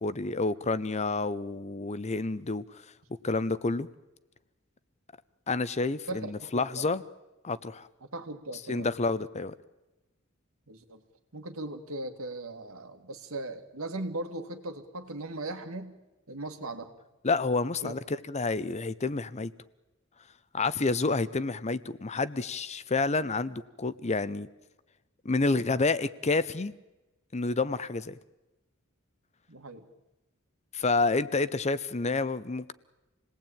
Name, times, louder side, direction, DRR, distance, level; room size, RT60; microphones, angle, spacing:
voice 1, 0.0-2.6 3.2-3.9 5.5-7.0 7.4-7.9 8.7-9.5 17.2-19.5 20.5-24.5 25.2-26.7 27.3-28.2 30.7-32.7, left 3 dB, 30° left, 16 dB, 0.8 m, -29 dB
voice 2, 6.1-7.0 8.0-8.9 10.7-11.0 11.3-15.9 16.3-16.9 17.8-17.9 29.5-29.8, right 2 dB, 90° right, 7 dB, 2.3 m, -38 dB
27.5 x 18.5 x 8.9 m, 1.1 s
head